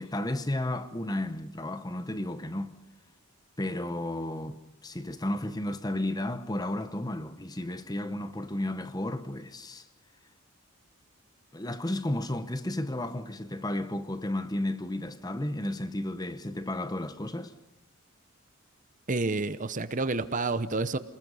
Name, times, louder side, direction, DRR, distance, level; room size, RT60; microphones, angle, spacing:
voice 1, 0.0-2.7 3.6-9.8 11.5-17.5, left 1 dB, 15° left, 0.9 m, -33 dB
voice 2, 19.1-21.0, right 3 dB, 35° right, 0.8 m, -29 dB
29.0 x 20.5 x 5.5 m
head